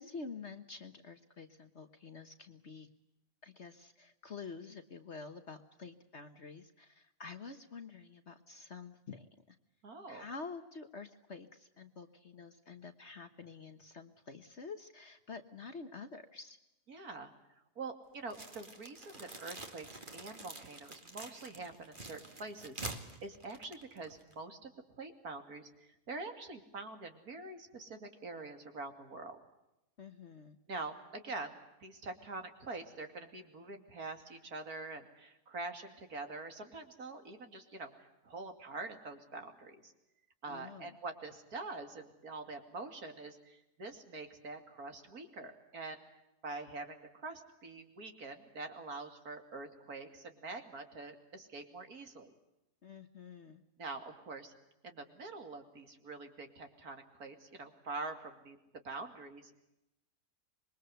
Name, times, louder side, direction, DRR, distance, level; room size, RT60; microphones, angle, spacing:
voice 1, 0.0-2.9 3.4-9.6 10.1-16.6 30.0-30.6 40.5-41.0 52.8-53.6, left 4 dB, 45° left, 8 dB, 1.4 m, -48 dB
voice 2, 9.8-10.2 16.9-17.3 17.8-25.7 26.1-29.4 30.7-39.9 40.4-46.0 46.4-52.3 53.8-54.5 54.8-58.6 58.8-59.6, right 3 dB, 65° right, 6 dB, 3.0 m, -45 dB
sound 1, 18.3-24.4, right 2 dB, 30° right, 2.3 m, -47 dB
26.5 x 22.0 x 8.0 m, 0.90 s
omnidirectional pair, 1.7 m